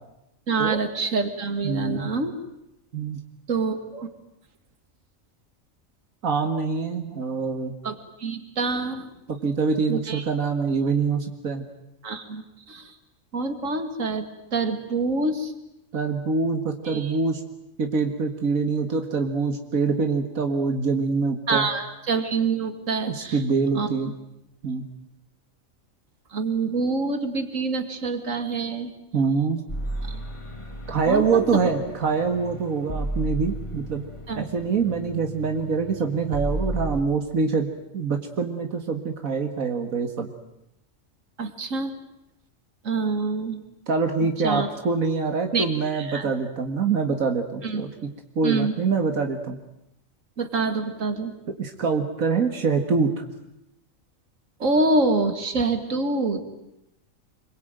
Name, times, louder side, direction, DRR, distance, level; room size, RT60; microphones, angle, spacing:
voice 1, 0.5-2.3 3.5-4.1 7.8-9.1 9.9-10.3 12.0-12.4 12.7-12.8 13.3-15.5 16.9-17.1 21.5-23.4 23.7-23.9 26.3-28.9 30.1-30.2 31.1-31.6 34.3-34.4 41.4-41.9 42.8-43.6 44.4-44.7 45.5-45.7 45.9-46.3 47.6-47.8 48.4-48.7 50.4-51.3 54.6-56.4, right 3 dB, 70° right, 8 dB, 2.5 m, -26 dB
voice 2, 1.6-2.1 2.9-3.2 6.2-7.7 9.3-11.6 15.9-17.4 17.8-21.7 23.1-24.1 24.6-24.8 29.1-29.6 30.9-34.0 34.4-37.7 37.9-40.3 43.9-48.1 48.4-49.6 51.6-53.2, right 4 dB, 90° right, 5 dB, 2.2 m, -25 dB
sound 1, 29.7-37.0, right 1 dB, 20° left, 2.1 m, -33 dB
26.0 x 23.0 x 9.1 m, 0.84 s
omnidirectional pair, 1.4 m